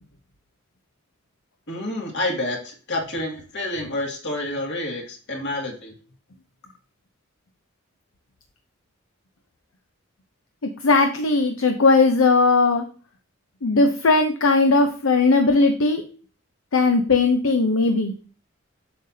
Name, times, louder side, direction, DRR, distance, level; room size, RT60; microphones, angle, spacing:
voice 1, 1.7-5.9, left 1 dB, 55° left, 0 dB, 2.3 m, -28 dB
voice 2, 10.6-12.8 13.6-16.0 16.7-18.1, left 3 dB, 75° left, 5 dB, 0.7 m, -18 dB
7.9 x 6.6 x 2.7 m, 0.40 s
head